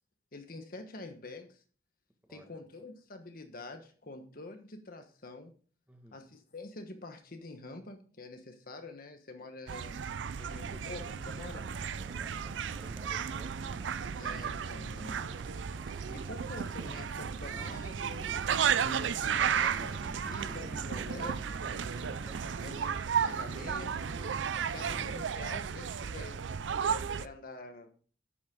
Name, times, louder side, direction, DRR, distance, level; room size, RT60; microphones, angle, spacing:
voice 1, 0.3-1.6 2.3-5.5 6.1-10.0 10.4-11.7 14.2-15.2 16.1-18.3 18.8-21.9 22.6-24.3 24.6-26.6 26.8-28.0, left 2 dB, 55° left, 6 dB, 1.2 m, -47 dB
voice 2, 2.3-2.6 5.9-6.3 12.0-13.8 22.2-22.9 24.6-24.9, right 1 dB, 10° right, 3 dB, 1.7 m, -56 dB
sound 1, 9.7-27.3, right 7 dB, 85° right, 0.5 m, -34 dB
Race car auto racing / Idling / Accelerating revving vroom, 10.6-25.1, right 1 dB, 25° right, 1.2 m, -49 dB
10.0 x 7.2 x 3.7 m, 0.41 s
head